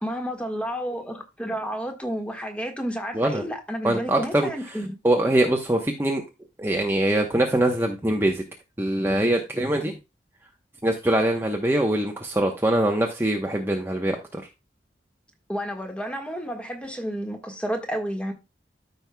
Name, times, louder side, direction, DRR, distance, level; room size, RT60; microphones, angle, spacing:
voice 1, 0.0-5.0 15.5-18.3, equal, 5° left, 1.5 m, -31 dB
voice 2, 3.8-4.8 5.0-6.2 6.6-8.4 8.8-10.0 10.8-14.4, right 1 dB, 15° right, 0.9 m, -23 dB
14.0 x 5.3 x 2.2 m
head